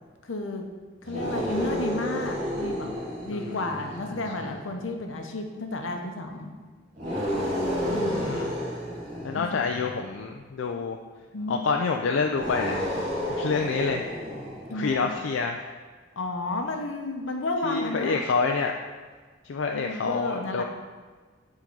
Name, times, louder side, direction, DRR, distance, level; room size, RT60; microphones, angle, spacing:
voice 1, 0.2-0.6 1.0-2.9 3.2-6.5 7.9-8.4 9.3-9.7 11.3-11.6 14.7-15.1 16.2-18.2 19.7-20.6, left 2 dB, 90° left, 4 dB, 0.8 m, -32 dB
sound 1, 1.0-4.6 6.9-10.1 12.3-15.0, equal, 45° right, 1.9 m, -31 dB
voice 2, 3.3-3.7 4.0-4.6 7.9-8.5 9.2-11.0 11.5-12.8 13.3-14.1 14.7-15.7 17.6-18.7 19.4-20.6, left 4 dB, 70° left, 3 dB, 0.4 m, -28 dB
7.4 x 3.8 x 5.3 m, 1.4 s
head